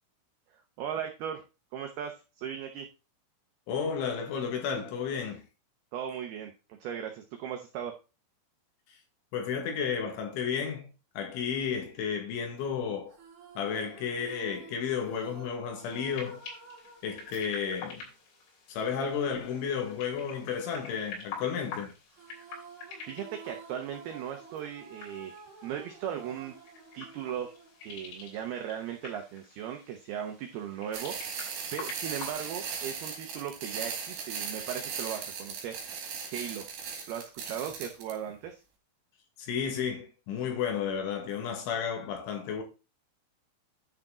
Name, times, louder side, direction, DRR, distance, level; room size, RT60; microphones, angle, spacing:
voice 1, 0.8-1.4 1.7-2.9 5.9-6.5 6.8-7.9 23.1-25.3 25.6-26.5 26.9-27.5 27.8-31.1 31.7-35.8 36.2-36.7 37.1-38.6, right 9 dB, 90° right, 2.2 m, -37 dB
voice 2, 3.7-5.4 9.3-10.9 11.2-13.1 13.6-16.4 17.0-18.0 18.7-21.9 39.4-42.6, left 7 dB, 75° left, 4.2 m, -32 dB
sound 1, 13.1-18.6 22.1-28.5, right 5 dB, 45° right, 2.9 m, -51 dB
sound 2, 15.8-32.3, left 5 dB, 90° left, 6.0 m, -47 dB
sound 3, 30.9-38.1, right 6 dB, 60° right, 4.0 m, -38 dB
10.5 x 6.1 x 3.8 m
omnidirectional pair, 5.8 m